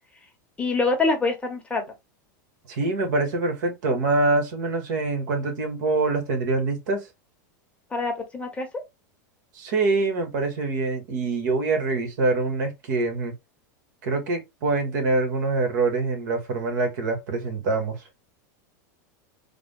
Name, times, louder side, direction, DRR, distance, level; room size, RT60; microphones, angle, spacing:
voice 1, 0.6-1.9 7.9-8.7, left 3 dB, 10° left, 0.9 m, -25 dB
voice 2, 2.7-7.1 9.5-13.3 14.0-18.0, right 3 dB, 70° right, 1.5 m, -25 dB
3.6 x 2.1 x 3.6 m
supercardioid pair, 145°, 10 cm